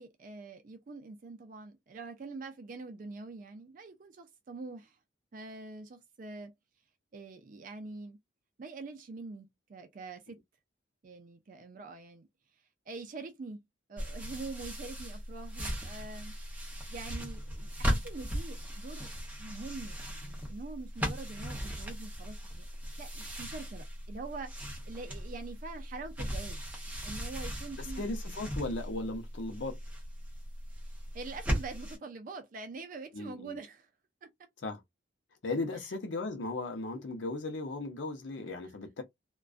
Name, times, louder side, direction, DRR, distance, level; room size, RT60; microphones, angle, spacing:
voice 1, 0.0-5.0 5.3-6.5 7.1-8.2 8.6-10.4 11.0-12.3 12.9-13.6 13.9-16.3 16.9-22.7 23.0-26.6 27.0-28.1 31.1-33.9 34.2-34.3 38.6-38.7, right 3 dB, 45° right, 0.4 m, -45 dB
sound 1, 14.0-32.0, equal, 10° right, 0.7 m, -38 dB
voice 2, 27.8-29.8 33.1-33.5 34.6-34.8 35.4-39.0, left 2 dB, 70° left, 0.5 m, -36 dB
2.3 x 2.2 x 2.3 m
head